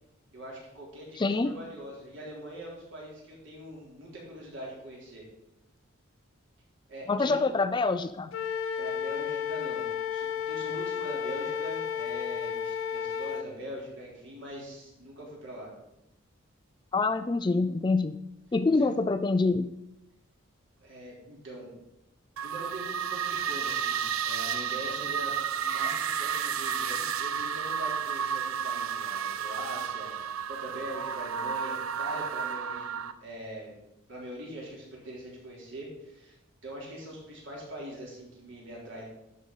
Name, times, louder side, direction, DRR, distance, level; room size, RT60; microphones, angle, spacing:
voice 1, 0.3-5.3 6.9-7.5 8.8-15.7 18.8-18.9 20.8-21.7 22.4-25.3 25.6-30.2 30.5-33.7 34.1-36.4 36.6-39.0, right 1 dB, 60° right, -4 dB, 3.8 m, -42 dB
voice 2, 1.2-1.5 7.1-8.3 16.9-18.1 18.5-19.7, left 3 dB, 20° left, 11 dB, 0.3 m, -26 dB
Wind instrument woodwind instrument, 8.3-13.5, left 8 dB, 75° left, 0.5 m, -32 dB
sound 1, 22.4-33.1, right 7 dB, 90° right, 0.6 m, -32 dB
11.0 x 5.3 x 5.4 m, 0.87 s
head